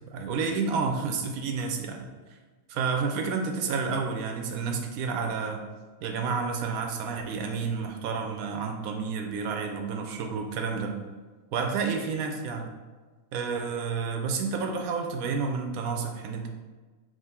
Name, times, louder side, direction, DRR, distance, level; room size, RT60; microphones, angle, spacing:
voice 1, 0.1-2.1 2.7-5.6 6.0-10.9 11.5-12.7 13.3-16.5, right 5 dB, 80° right, 3 dB, 1.0 m, -30 dB
3.7 x 3.0 x 4.2 m, 1.3 s
omnidirectional pair, 1.5 m